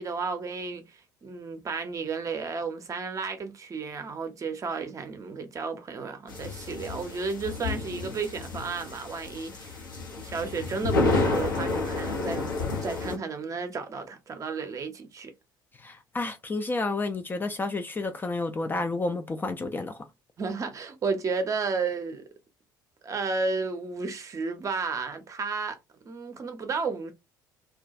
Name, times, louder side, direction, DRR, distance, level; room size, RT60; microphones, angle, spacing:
voice 1, 0.0-9.8 10.2-12.5 12.8-15.3 20.4-22.3 23.0-25.8 26.0-27.1, right 4 dB, 30° right, 0.6 m, -33 dB
sound 1, 6.3-13.2, left 3 dB, 80° left, 0.7 m, -30 dB
voice 2, 15.8-20.0, left 3 dB, 20° left, 0.3 m, -30 dB
2.2 x 2.2 x 2.5 m
figure-of-eight pair, 55°, 11 cm